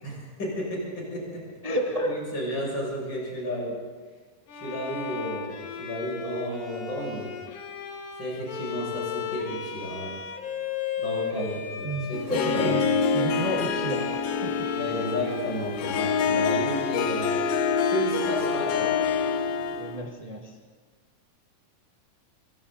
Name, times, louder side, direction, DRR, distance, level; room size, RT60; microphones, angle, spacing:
voice 1, 0.0-1.4 2.0-3.8 4.5-7.3 8.2-10.1 11.0-12.8 14.8-17.4 17.9-19.1, equal, 30° left, -3 dB, 8.0 m, -32 dB
voice 2, 1.6-2.2 11.3-11.5 11.8-12.9 13.1-14.7 19.8-20.6, right 1 dB, 70° right, 1 dB, 0.3 m, -31 dB
Bowed string instrument, 4.5-20.2, left 6 dB, 70° left, 3.4 m, -36 dB
Harp, 12.1-20.0, left 5 dB, 85° left, 3.0 m, -26 dB
27.0 x 24.5 x 4.2 m, 1.4 s
omnidirectional pair, 4.2 m